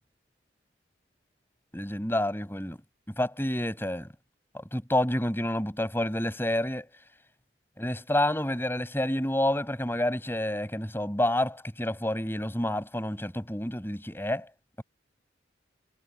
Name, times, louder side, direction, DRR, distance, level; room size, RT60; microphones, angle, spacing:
voice 1, 1.7-2.8 3.2-4.1 4.5-6.9 7.8-14.5, left 1 dB, 10° left, 6.8 m, -29 dB
head